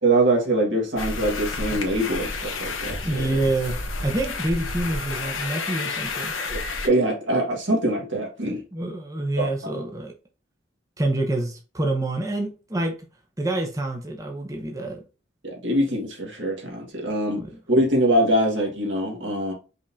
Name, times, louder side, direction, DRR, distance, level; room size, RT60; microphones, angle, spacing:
voice 1, 0.0-3.3 6.5-8.6 9.4-9.8 15.4-17.4 17.7-19.5, right 1 dB, 65° right, 1.8 m, -23 dB
sound 1, 1.0-6.9, left 3 dB, 80° left, 1.0 m, -30 dB
voice 2, 3.0-6.3 8.7-10.1 11.0-12.9 13.4-15.0 17.4-17.6, right 2 dB, 15° right, 0.7 m, -27 dB
5.2 x 3.6 x 2.7 m
head